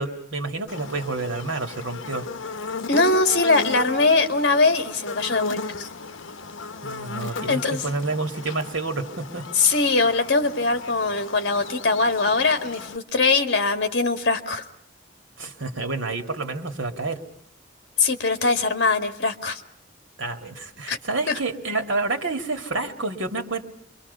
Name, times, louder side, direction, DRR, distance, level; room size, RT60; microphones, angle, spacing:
voice 1, 0.0-2.3 6.8-9.5 15.4-17.2 20.2-23.6, right 3 dB, 80° right, 5 dB, 2.5 m, -29 dB
Buzz, 0.7-13.0, left 4 dB, 85° left, 1.0 m, -36 dB
voice 2, 2.9-5.9 7.5-7.8 9.5-14.6 18.0-19.6 20.9-21.0 21.3-21.4, left 3 dB, 60° left, 7 dB, 2.1 m, -21 dB
29.5 x 24.0 x 5.6 m, 0.68 s
head